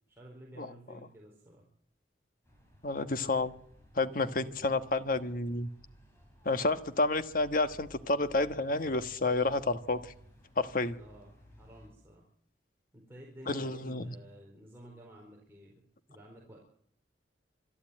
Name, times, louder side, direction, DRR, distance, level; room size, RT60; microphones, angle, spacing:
voice 1, 0.1-1.6 4.3-4.6 11.0-11.3 11.6-12.2 12.9-15.8 16.1-16.6, right 1 dB, 15° right, -2 dB, 4.4 m, -52 dB
sound 1, 2.5-11.9, equal, 15° left, 6.2 m, -58 dB
voice 2, 2.8-3.5 3.9-5.7 6.4-10.0 10.6-11.0 13.5-14.1, left 2 dB, 50° left, 10 dB, 1.3 m, -30 dB
26.0 x 11.5 x 8.8 m, 0.65 s
head